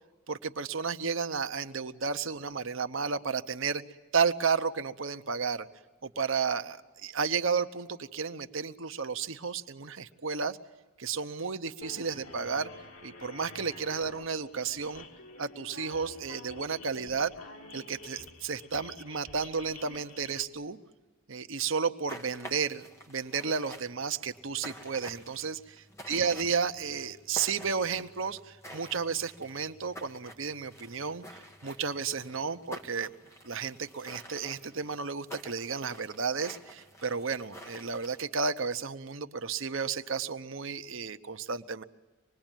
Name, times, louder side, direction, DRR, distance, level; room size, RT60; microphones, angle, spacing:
voice 1, 0.3-3.8 4.1-5.7 6.0-10.6 11.0-12.7 13.0-15.0 15.4-17.3 17.7-20.8 21.3-25.6 26.1-33.1 33.4-41.8, right 5 dB, 65° right, 9 dB, 0.9 m, -32 dB
sound 1, 11.8-20.4, left 2 dB, 85° left, 2.5 m, -49 dB
sound 2, 22.1-38.2, equal, 15° left, 1.8 m, -49 dB
26.0 x 20.5 x 9.1 m, 1.2 s
head